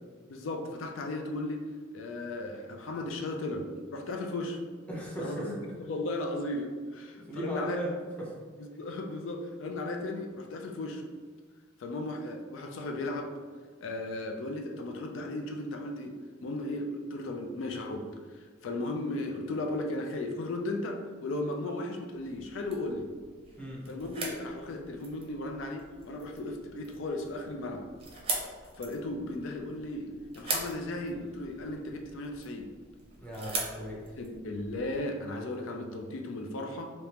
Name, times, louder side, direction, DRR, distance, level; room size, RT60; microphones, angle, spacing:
voice 1, 0.3-1.7 1.9-4.6 5.2-7.8 8.6-11.1 11.8-13.3 13.8-16.1 16.4-23.1 23.9-27.9 28.8-32.7 34.2-36.9, left 2 dB, 80° left, 3 dB, 0.4 m, -36 dB
voice 2, 4.9-5.5 7.1-7.9 8.2-8.3 23.6-23.9 33.2-34.0, right 1 dB, 5° left, -5 dB, 0.7 m, -37 dB
sound 1, 22.1-35.0, right 3 dB, 30° right, 0.6 m, -41 dB
3.4 x 2.8 x 2.9 m, 1.5 s
head